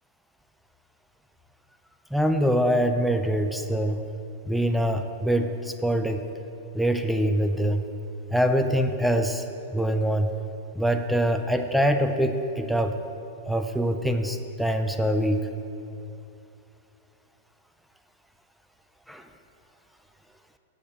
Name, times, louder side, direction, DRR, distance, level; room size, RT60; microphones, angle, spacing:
voice 1, 2.1-4.0 4.5-6.2 6.7-7.8 8.3-9.4 9.7-10.3 10.8-13.0 13.5-15.4 19.1-19.3, equal, ahead, 6 dB, 0.4 m, -24 dB
8.7 x 5.0 x 7.1 m, 2.7 s
hypercardioid pair, 125°, 0 cm